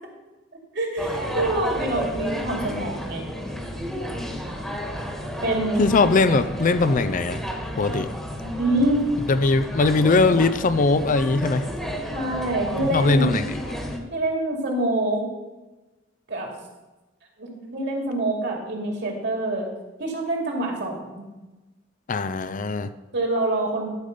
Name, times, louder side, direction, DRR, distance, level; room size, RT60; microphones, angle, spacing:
voice 1, 0.7-3.2 5.4-5.9 8.6-9.0 12.1-13.4 14.1-15.2 16.3-16.5 17.4-19.7 20.0-21.2 23.1-23.9, right 1 dB, 60° right, 0 dB, 2.6 m, -25 dB
sound 1, 1.0-14.0, equal, ahead, 1.4 m, -32 dB
voice 2, 5.8-7.4 7.8-8.1 9.3-11.7 12.8-13.5 22.1-22.9, left 3 dB, 45° left, 12 dB, 0.5 m, -20 dB
12.5 x 5.1 x 6.7 m, 1.1 s
head